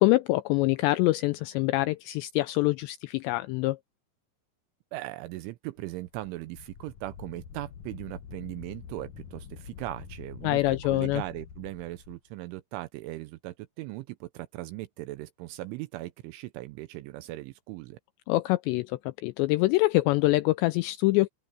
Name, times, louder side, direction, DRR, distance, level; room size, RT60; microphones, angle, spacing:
voice 1, 0.0-3.8 10.4-11.2 18.3-21.3, left 19 dB, 85° left, 2.5 m, -25 dB
voice 2, 4.9-18.0, right 17 dB, 85° right, 3.2 m, -39 dB
Wind, 5.8-12.2, left 7 dB, 70° left, 1.8 m, -46 dB
open air
omnidirectional pair, 5.5 m